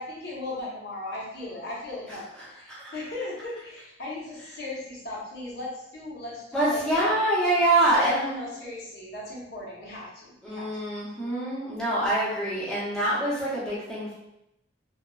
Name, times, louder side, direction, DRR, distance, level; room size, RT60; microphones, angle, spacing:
voice 1, 0.0-2.2 2.5-7.1 7.9-10.8, left 2 dB, 60° left, -5 dB, 0.7 m, -37 dB
voice 2, 6.5-8.3 10.4-14.1, right 1 dB, 5° left, -10 dB, 0.6 m, -25 dB
3.0 x 2.1 x 2.2 m, 0.84 s
head